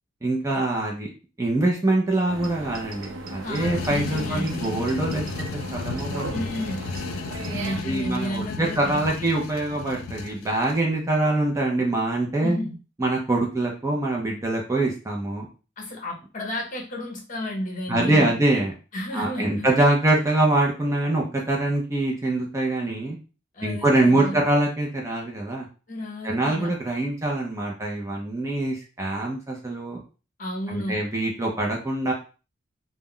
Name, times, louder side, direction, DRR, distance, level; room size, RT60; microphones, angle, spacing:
voice 1, 0.2-1.1 1.4-5.2 5.5-6.3 7.8-12.6 13.0-15.5 17.9-18.7 19.1-23.2 23.6-25.7 26.2-30.0 30.7-32.1, right 2 dB, 15° right, -1 dB, 0.4 m, -24 dB
sound 1, 2.3-7.8, right 2 dB, 70° right, 0.5 m, -36 dB
sound 2, 3.4-10.8, left 5 dB, 85° left, 0.3 m, -34 dB
voice 2, 3.4-4.8 6.3-6.8 7.5-9.3 12.4-12.8 15.8-18.4 18.9-19.7 23.5-24.4 25.9-26.7 30.4-31.0, left 1 dB, 40° left, -1 dB, 0.7 m, -32 dB
2.2 x 2.0 x 3.5 m, 0.35 s
head